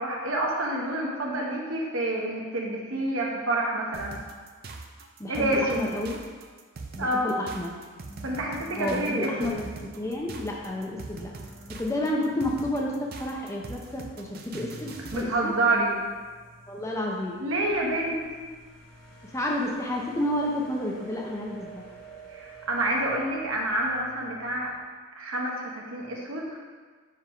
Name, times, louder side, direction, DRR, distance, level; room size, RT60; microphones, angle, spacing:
voice 1, 0.0-4.1 5.3-5.8 7.0-7.3 8.2-9.6 15.1-15.9 17.4-18.5 22.3-24.7 25.2-26.6, right 1 dB, 70° right, -1 dB, 1.0 m, -28 dB
sound 1, 3.9-15.3, right 3 dB, 45° right, 0.5 m, -42 dB
voice 2, 5.2-6.2 6.9-7.7 8.8-9.6 10.0-11.3 11.8-15.5 16.7-17.4 19.3-21.8, left 1 dB, 15° left, -2 dB, 0.6 m, -30 dB
sound 2, 8.0-24.8, right 2 dB, 45° left, 1.3 m, -50 dB
4.9 x 3.5 x 5.5 m, 1.4 s
head